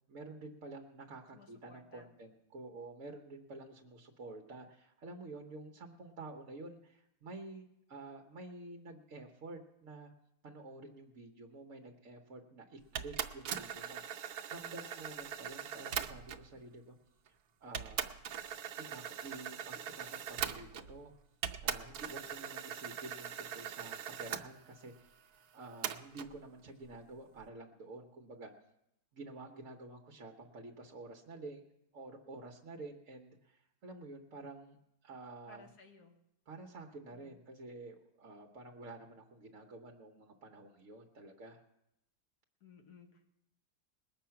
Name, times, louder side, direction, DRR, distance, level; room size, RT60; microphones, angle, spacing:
voice 1, 0.1-10.1 10.4-17.0 17.2-18.2 18.8-21.1 21.6-28.5 29.1-31.6 31.9-35.7 36.5-41.6, right 2 dB, 55° right, 2 dB, 1.3 m, -50 dB
voice 2, 1.3-2.1 35.5-36.1 37.1-37.4 42.6-43.3, left 5 dB, 75° left, 3 dB, 2.0 m, -59 dB
sound 1, 12.9-16.5 17.3-17.4 17.7-21.0 21.4-24.4 25.8-26.3, right 9 dB, 75° right, 1.3 m, -41 dB
20.5 x 7.4 x 5.7 m, 0.85 s
omnidirectional pair, 1.7 m